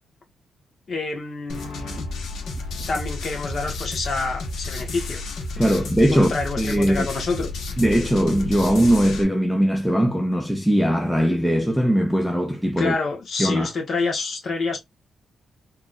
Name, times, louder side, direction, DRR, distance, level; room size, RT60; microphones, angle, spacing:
voice 1, 0.9-2.0 2.9-5.2 5.5-5.6 6.1-7.5 12.8-14.8, left 3 dB, 40° left, 1.2 m, -27 dB
sound 1, 1.5-9.2, left 2 dB, 75° left, 1.1 m, -31 dB
voice 2, 5.6-7.1 7.8-12.9 13.4-13.7, equal, ahead, 0.4 m, -20 dB
3.0 x 2.3 x 3.9 m
wide cardioid pair, 165°, 0 cm